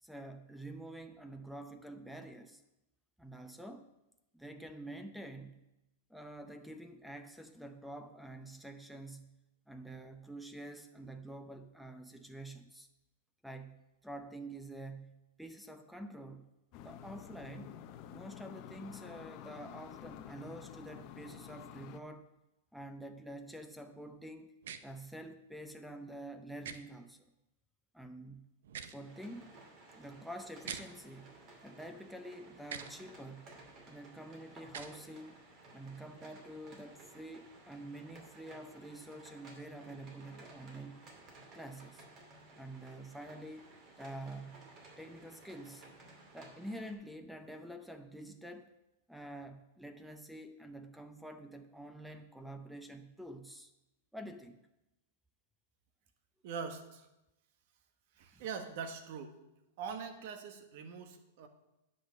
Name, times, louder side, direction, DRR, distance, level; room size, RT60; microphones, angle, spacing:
voice 1, 0.0-2.6 3.2-3.9 4.3-5.6 6.1-9.4 9.7-12.9 13.4-16.5 16.8-17.8 18.1-22.3 22.7-24.5 24.8-27.2 27.9-28.5 28.9-29.6 30.0-33.5 33.9-35.3 35.7-41.0 41.5-42.0 42.6-43.7 44.0-44.7 45.0-45.8 46.3-48.7 49.1-53.7 54.1-54.6 58.4-58.5, right 1 dB, ahead, 8 dB, 0.7 m, -47 dB
sound 1, 16.7-22.0, left 9 dB, 45° left, 0.7 m, -50 dB
sound 2, 24.6-24.8 26.6-26.8 28.6-29.0 30.6-30.8 32.6-32.9 34.6-34.9, right 8 dB, 75° right, 0.7 m, -43 dB
sound 3, 29.0-46.9, right 2 dB, 35° right, 2.6 m, -56 dB
voice 2, 56.4-57.1 58.2-59.4 59.8-61.5, right 6 dB, 60° right, 8 dB, 1.4 m, -42 dB
10.5 x 5.7 x 6.5 m, 0.94 s
hypercardioid pair, 125°, 0 cm